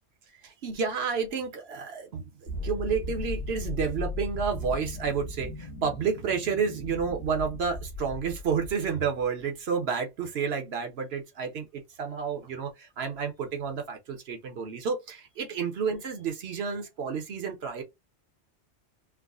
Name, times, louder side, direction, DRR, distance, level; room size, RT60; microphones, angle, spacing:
voice 1, 0.4-17.8, right 6 dB, 65° right, 1.0 m, -30 dB
sound 1, 2.5-9.3, left 2 dB, 65° left, 1.3 m, -37 dB
4.6 x 2.1 x 2.4 m
omnidirectional pair, 1.2 m